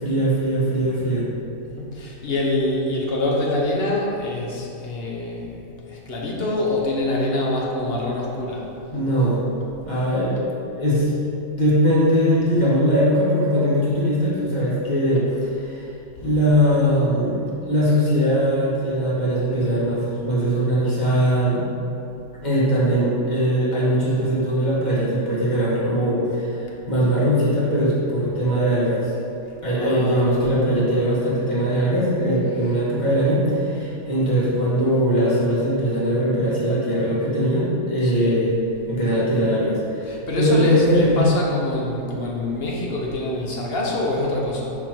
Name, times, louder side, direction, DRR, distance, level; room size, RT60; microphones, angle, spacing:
voice 1, 0.0-1.3 8.9-9.5 9.9-10.4 10.7-11.1 11.6-15.8 16.2-21.7 22.4-29.1 29.6-38.6 38.9-41.3, equal, 30° left, -8 dB, 1.7 m, -20 dB
voice 2, 1.6-8.7 29.7-30.3 38.0-38.4 40.0-44.7, left 1 dB, 50° left, -3 dB, 1.1 m, -25 dB
5.9 x 4.2 x 4.5 m, 2.7 s
omnidirectional pair, 1.5 m